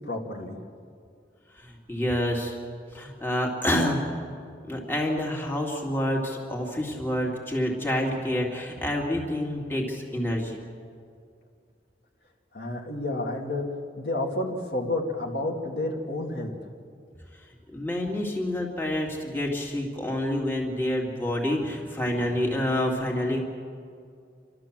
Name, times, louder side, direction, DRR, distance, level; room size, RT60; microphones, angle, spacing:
voice 1, 0.1-0.6 12.5-16.6, left 2 dB, 60° left, -1 dB, 2.2 m, -30 dB
voice 2, 1.5-2.6 2.9-4.0 4.7-10.6 17.3-23.4, left 1 dB, 10° left, -2 dB, 2.6 m, -28 dB
29.0 x 13.0 x 7.5 m, 2.3 s
head